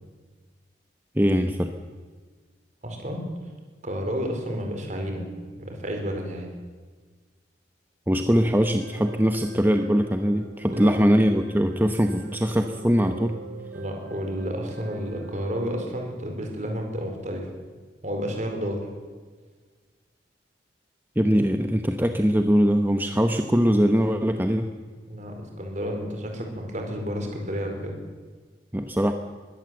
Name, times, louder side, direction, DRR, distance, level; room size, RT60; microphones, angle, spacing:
voice 1, 1.2-1.7 8.1-13.4 21.2-24.7 28.7-29.1, equal, 10° right, 6 dB, 0.9 m, -22 dB
voice 2, 2.8-3.2 3.8-5.2 5.6-6.5 10.7-10.9 13.7-17.5 18.0-18.9 25.1-27.9, equal, 40° right, 3 dB, 4.6 m, -31 dB
sound 1, 8.8-16.1, right 3 dB, 70° right, 3.3 m, -45 dB
22.0 x 17.0 x 7.8 m, 1.5 s
head